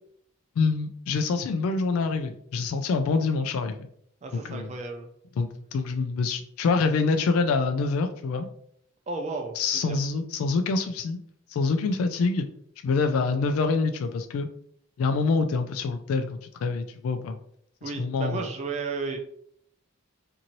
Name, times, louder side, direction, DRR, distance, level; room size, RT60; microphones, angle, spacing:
voice 1, 0.6-3.9 4.5-4.7 5.4-8.5 9.6-11.2 11.5-12.5 12.8-14.5 15.0-17.4 18.0-18.4, left 4 dB, 90° left, 6 dB, 0.3 m, -26 dB
voice 2, 4.2-5.1 9.1-10.0 17.8-19.2, right 4 dB, 30° right, 4 dB, 0.3 m, -33 dB
2.7 x 2.6 x 2.9 m, 0.67 s
head